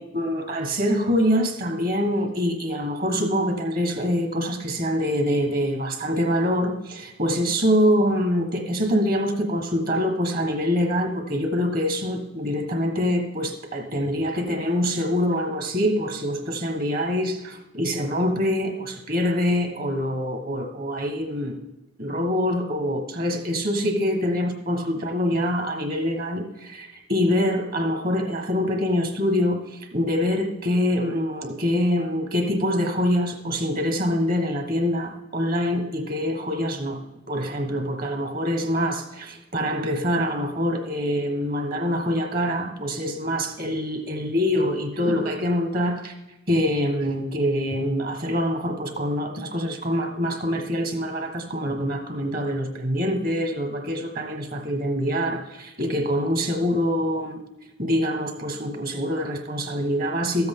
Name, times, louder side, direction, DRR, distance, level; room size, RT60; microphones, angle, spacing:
voice 1, 0.0-21.6 22.0-37.0 37.3-46.1 46.5-57.4 57.8-60.5, equal, 45° right, 5 dB, 1.3 m, -25 dB
13.5 x 7.8 x 3.7 m, 1.0 s
head